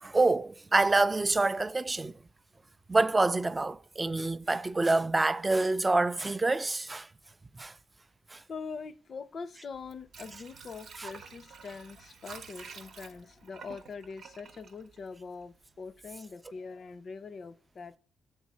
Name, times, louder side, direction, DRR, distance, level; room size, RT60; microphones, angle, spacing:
voice 1, 0.0-2.1 2.9-7.1 7.6-7.7 8.3-8.4 11.0-11.1, right 2 dB, 20° right, 0.3 m, -27 dB
voice 2, 8.5-18.0, left 5 dB, 45° left, 0.4 m, -43 dB
Water / Sink (filling or washing), 9.7-15.6 16.0-16.1, right 5 dB, 60° right, 0.8 m, -49 dB
7.3 x 3.7 x 6.0 m
cardioid pair, 90°, 0 cm